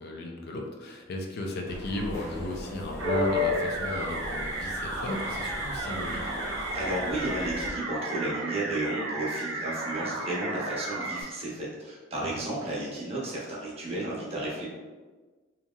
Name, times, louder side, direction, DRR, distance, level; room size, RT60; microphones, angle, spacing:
voice 1, 0.0-6.2, left 2 dB, 55° left, 1 dB, 0.4 m, -35 dB
sound 1, 1.7-7.7, left 2 dB, 15° left, 0.6 m, -34 dB
sound 2, 3.0-11.2, right 2 dB, 65° right, 0.6 m, -34 dB
voice 2, 6.7-14.7, right 1 dB, 30° right, -5 dB, 0.7 m, -33 dB
2.9 x 2.6 x 2.3 m, 1.3 s
head